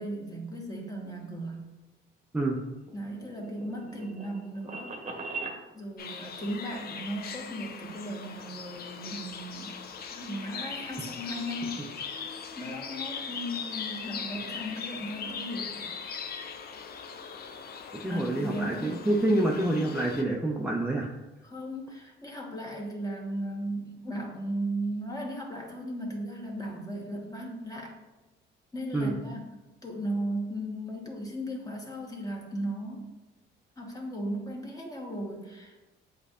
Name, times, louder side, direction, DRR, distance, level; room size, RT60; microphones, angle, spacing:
voice 1, 0.0-1.7 2.9-5.4 5.7-9.7 10.1-11.9 12.6-15.9 18.1-19.0 21.4-28.0 28.7-33.1 33.8-35.8, right 1 dB, 20° left, -1 dB, 1.2 m, -36 dB
sound 1, 2.5-5.6, right 3 dB, 35° right, 0.9 m, -40 dB
sound 2, 6.0-20.2, left 6 dB, 50° left, 0.5 m, -40 dB
voice 2, 18.0-21.1 28.9-29.1, right 1 dB, 5° right, -2 dB, 0.5 m, -27 dB
7.8 x 2.7 x 2.4 m, 1.1 s
cardioid pair, 90°, 20 cm